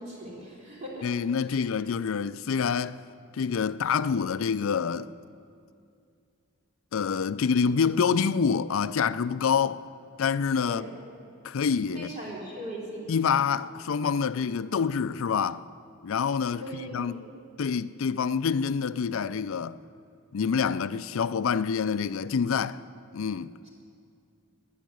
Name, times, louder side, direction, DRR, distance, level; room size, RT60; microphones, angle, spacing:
voice 1, 0.0-1.1 1.5-1.7 10.7-10.9 11.9-13.1 16.6-17.3 23.6-23.7, right 1 dB, 35° right, 3.9 m, -39 dB
voice 2, 1.0-3.0 3.3-5.1 6.9-9.8 10.2-10.9 11.4-12.1 13.1-15.6 16.0-16.6 16.9-17.2 17.6-19.8 20.3-22.8 23.1-23.5, left 6 dB, 65° left, 0.4 m, -26 dB
13.5 x 10.5 x 9.3 m
head